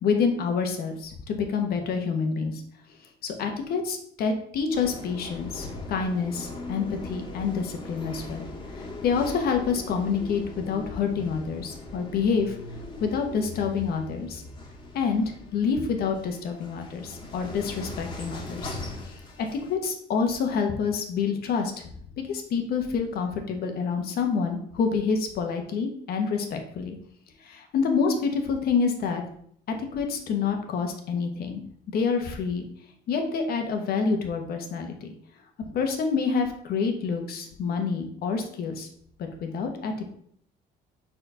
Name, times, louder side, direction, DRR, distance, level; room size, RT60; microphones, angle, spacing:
voice 1, 0.0-2.6 3.2-8.4 8.7-12.6 13.0-14.4 14.9-15.2 15.5-18.7 19.0-19.2 19.5-21.9 22.2-26.9 27.4-29.2 29.7-31.6 31.9-32.6 33.1-35.1 35.7-38.9 39.2-40.1, left 5 dB, 65° left, 4 dB, 1.2 m, -27 dB
sound 1, 4.7-19.7, left 2 dB, 25° left, 1.7 m, -40 dB
4.5 x 4.3 x 5.5 m, 0.65 s
cardioid pair, 110°, 17 cm